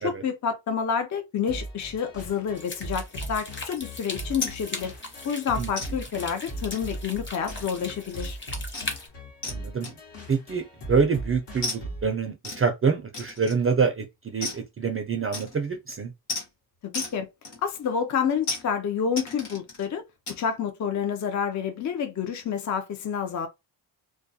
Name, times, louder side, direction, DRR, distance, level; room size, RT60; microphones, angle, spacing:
voice 1, 0.0-4.9 5.2-8.4 16.8-17.3 17.6-20.0 20.4-23.5, left 7 dB, 40° left, 0.5 m, -29 dB
sound 1, 1.5-12.1, right 1 dB, 65° left, 1.1 m, -39 dB
sound 2, 2.6-9.1, left 2 dB, 25° left, 0.9 m, -39 dB
sound 3, 4.4-4.6 5.0-5.1 5.8-5.9 6.7-7.0 7.5-7.8 8.1-8.3 8.7-9.0 9.4-9.6 9.8-10.3 11.6-11.8 12.4-12.7 13.1-13.7 14.4-14.7 15.3-15.7 16.3-16.5 16.9-17.2 17.4-17.9 18.4-18.7 19.2-19.9 20.3-20.4, left 2 dB, 80° left, 1.3 m, -34 dB
voice 2, 9.5-9.9 10.3-16.1, right 5 dB, 30° right, 0.4 m, -26 dB
2.2 x 2.2 x 2.6 m
cardioid pair, 95°, 46 cm